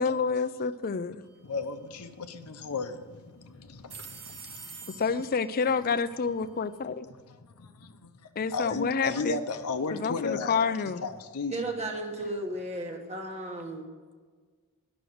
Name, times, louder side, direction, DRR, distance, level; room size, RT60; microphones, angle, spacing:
voice 1, 0.0-1.3 5.0-7.1 8.4-9.4 10.0-11.1, left 5 dB, 40° left, 0.4 m, -28 dB
sound 1, 1.2-1.8 3.7-6.8, right 5 dB, 55° right, 1.9 m, -48 dB
voice 2, 1.4-5.0 7.1-11.6, left 4 dB, 85° left, 0.7 m, -35 dB
voice 3, 11.5-13.9, right 1 dB, 30° right, 1.2 m, -34 dB
11.0 x 6.1 x 7.8 m
head